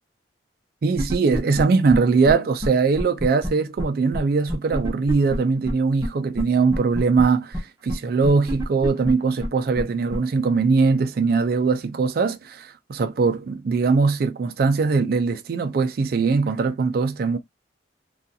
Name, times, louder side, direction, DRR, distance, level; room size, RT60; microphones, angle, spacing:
voice 1, 0.8-17.4, right 4 dB, 55° right, 0.3 m, -21 dB
sound 1, 1.0-1.6 1.9-2.0 2.3-2.4 2.6-2.7 3.0-3.5 3.8-3.9 4.1-4.2 4.5-5.4 5.7-5.8 6.0-6.1 6.4-6.5 6.7-7.2 7.5-7.6 7.9-8.0 8.2-9.1 9.4-9.5 9.8-9.9 10.1-10.2, equal, 20° right, 0.7 m, -26 dB
2.5 x 2.3 x 2.6 m
head